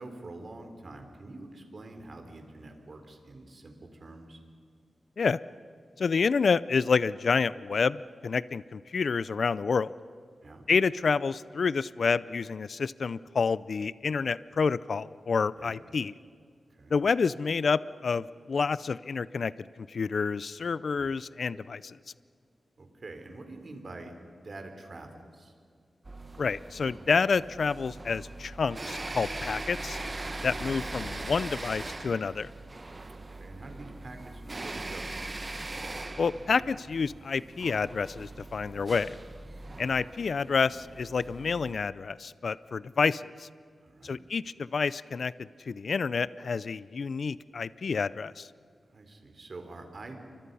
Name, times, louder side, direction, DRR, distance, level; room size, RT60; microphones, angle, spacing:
voice 1, 0.0-4.4 10.4-10.6 15.6-15.8 16.8-17.0 22.8-24.1 24.4-25.5 30.5-30.7 33.4-35.1 39.6-39.8 43.8-44.2 48.9-50.2, right 2 dB, 50° right, 5 dB, 3.9 m, -46 dB
voice 2, 6.0-9.9 10.7-16.1 16.9-22.0 26.4-30.0 30.4-32.5 36.2-39.1 39.8-43.5 44.0-48.5, left 5 dB, 65° left, 17 dB, 0.5 m, -29 dB
sound 1, 26.0-41.7, right 2 dB, 30° right, 1.3 m, -40 dB
30.0 x 24.5 x 5.6 m, 2.1 s
wide cardioid pair, 95°, 0 cm